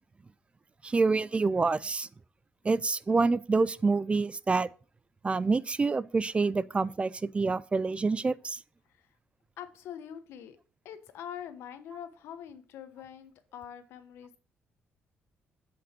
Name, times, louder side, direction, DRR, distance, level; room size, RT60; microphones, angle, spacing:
voice 1, 0.8-2.1 2.6-4.7 5.2-8.6, right 4 dB, 30° right, 0.4 m, -27 dB
voice 2, 9.6-10.6 10.8-14.4, left 9 dB, 80° left, 1.0 m, -44 dB
8.0 x 5.3 x 4.4 m
supercardioid pair, 70°, 4 cm